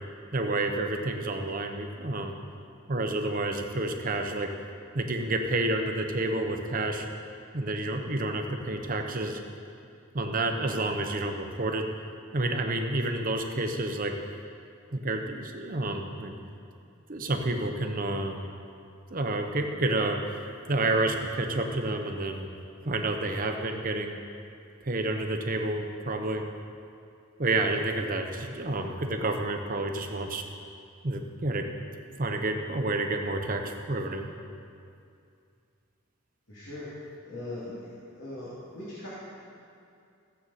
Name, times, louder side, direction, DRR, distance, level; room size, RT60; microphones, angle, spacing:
voice 1, 0.3-2.4 2.9-4.5 4.9-7.1 7.5-9.4 10.1-11.9 12.3-14.1 14.9-16.3 17.1-18.4 19.1-20.2 20.7-22.5 22.8-24.2 24.8-26.4 27.4-30.4 31.0-31.7 32.2-34.3, right 2 dB, 40° right, 4 dB, 0.9 m, -29 dB
voice 2, 36.5-36.9 37.2-39.1, left 1 dB, 65° left, -10 dB, 2.6 m, -40 dB
16.0 x 7.9 x 4.2 m, 2.5 s
head